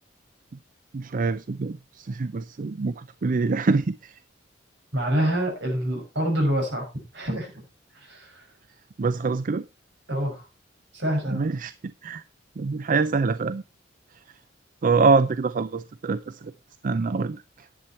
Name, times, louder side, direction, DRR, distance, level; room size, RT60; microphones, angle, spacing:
voice 1, 0.9-4.2 9.0-9.6 11.3-11.7 12.0-12.2 12.6-13.6 14.8-16.5 16.8-17.7, right 4 dB, 45° right, 0.5 m, -25 dB
voice 2, 4.9-6.9 7.1-7.6 7.9-8.4 10.1-10.5 10.9-11.4, right 1 dB, 65° right, 5.8 m, -26 dB
10.5 x 8.6 x 4.2 m
head